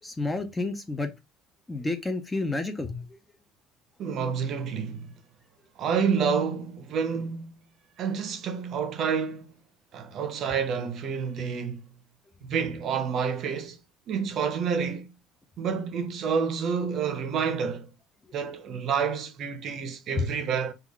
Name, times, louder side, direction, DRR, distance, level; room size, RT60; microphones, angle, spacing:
voice 1, 0.0-1.1 1.7-3.1, left 2 dB, 10° left, 0.3 m, -30 dB
voice 2, 4.0-5.1 5.8-7.6 8.0-9.5 9.9-11.9 12.4-13.8 14.1-15.1 15.6-17.9 18.3-20.7, right 6 dB, 40° right, 0.6 m, -29 dB
3.5 x 2.2 x 3.3 m
cardioid pair, 170°, 0 cm